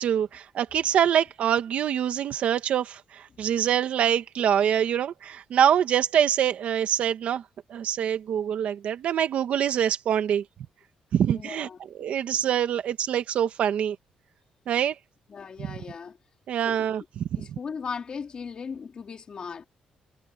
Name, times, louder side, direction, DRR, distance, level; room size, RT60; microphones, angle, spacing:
voice 1, 0.0-7.4 7.7-10.4 11.1-11.7 11.9-13.9 14.7-14.9 15.7-15.8 16.5-17.0, right 9 dB, 60° right, 1.6 m, -25 dB
voice 2, 11.3-11.8 15.3-16.2 16.6-16.9 17.4-19.7, left 6 dB, 35° left, 2.7 m, -37 dB
cardioid pair, 155°, 2 cm